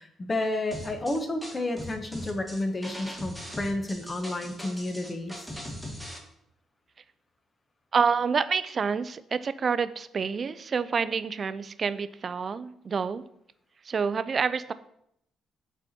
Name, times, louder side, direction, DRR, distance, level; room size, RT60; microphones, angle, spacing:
voice 1, 0.0-5.3, left 2 dB, 25° left, 6 dB, 1.0 m, -31 dB
sound 1, 0.7-6.2, equal, 5° left, 1.5 m, -40 dB
voice 2, 7.9-13.2 13.9-14.7, right 5 dB, 45° right, 14 dB, 0.4 m, -28 dB
7.0 x 4.2 x 4.2 m, 0.74 s
cardioid pair, 90°, 0 cm